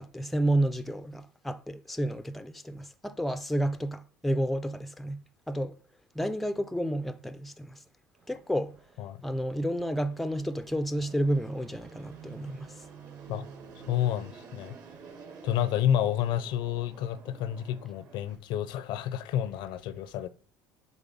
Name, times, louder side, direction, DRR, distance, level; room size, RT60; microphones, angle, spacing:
voice 1, 0.0-5.7 6.1-7.8 8.3-8.8 9.2-12.8, right 1 dB, ahead, 0.5 m, -31 dB
Fixed-wing aircraft airplane, 8.1-18.4, right 6 dB, 50° right, 2.0 m, -50 dB
voice 2, 13.9-14.7 15.4-20.3, left 10 dB, 65° left, 0.6 m, -30 dB
7.2 x 3.9 x 5.3 m
supercardioid pair, 110°, 8 cm